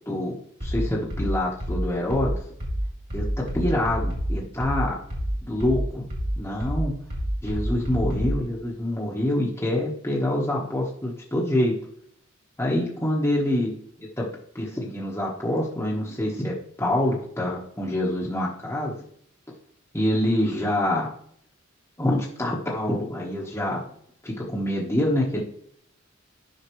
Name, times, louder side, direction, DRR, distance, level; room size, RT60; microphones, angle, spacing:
voice 1, 0.6-2.3 3.1-3.3 3.5-4.9 5.5-6.1 6.4-6.9 7.4-11.8 12.6-13.7 14.0-14.3 14.5-18.9 19.9-21.1 22.0-23.8 24.2-25.4, left 1 dB, 10° left, -5 dB, 1.2 m, -26 dB
sound 1, 0.6-8.4, equal, 45° right, 2.5 m, -28 dB
10.0 x 5.8 x 3.1 m, 0.67 s
head